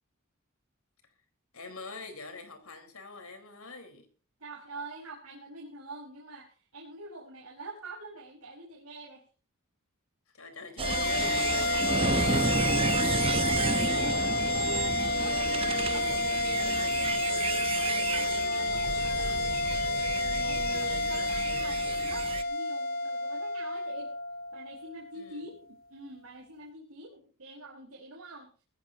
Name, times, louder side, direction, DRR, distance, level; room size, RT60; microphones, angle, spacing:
voice 1, 1.5-4.1 10.3-12.5 25.1-25.5, left 3 dB, 70° left, 6 dB, 4.6 m, -44 dB
voice 2, 4.4-9.3 11.7-12.0 12.5-19.4 20.1-24.1 24.5-28.5, right 2 dB, 75° right, -3 dB, 5.3 m, -46 dB
sound 1, 10.8-25.4, left 2 dB, 40° left, 0.6 m, -30 dB
sound 2, 10.8-22.4, right 3 dB, 25° right, 0.9 m, -31 dB
20.0 x 15.5 x 3.0 m, 0.38 s
head